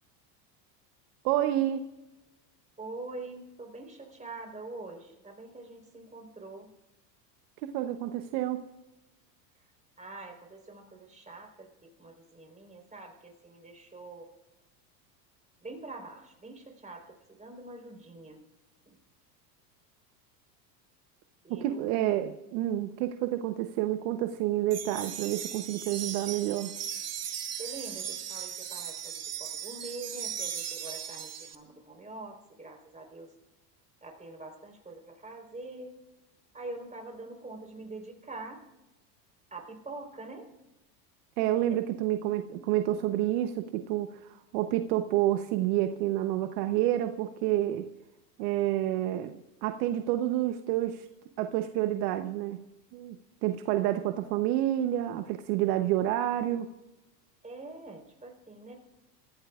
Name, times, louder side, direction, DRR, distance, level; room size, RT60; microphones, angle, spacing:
voice 1, 1.2-1.9 7.6-8.6 21.5-26.7 41.4-47.9 48.4-51.1 51.4-52.6 52.9-56.7, right 13 dB, 65° right, 8 dB, 1.0 m, -29 dB
voice 2, 2.8-6.7 10.0-14.3 15.6-18.4 18.9-19.0 21.4-22.1 27.6-33.3 34.0-36.0 36.5-38.6 39.5-40.5 41.7-41.8 57.4-58.8, right 2 dB, 15° right, 2 dB, 4.1 m, -44 dB
sound 1, 24.7-31.6, right 9 dB, 30° right, 1.1 m, -38 dB
26.5 x 15.0 x 2.4 m, 0.97 s
hypercardioid pair, 90°, 50 cm